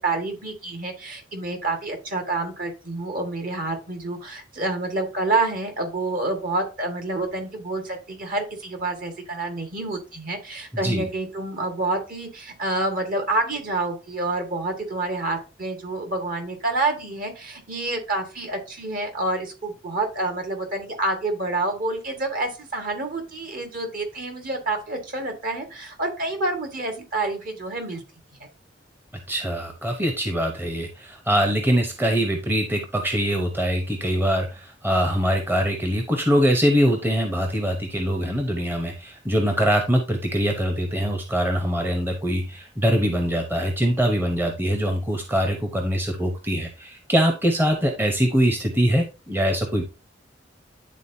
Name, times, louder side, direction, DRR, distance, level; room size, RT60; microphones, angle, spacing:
voice 1, 0.0-28.0, right 2 dB, 50° right, 4 dB, 1.7 m, -28 dB
voice 2, 29.3-49.8, equal, 10° right, 3 dB, 0.8 m, -23 dB
10.5 x 3.9 x 2.7 m, 0.31 s
head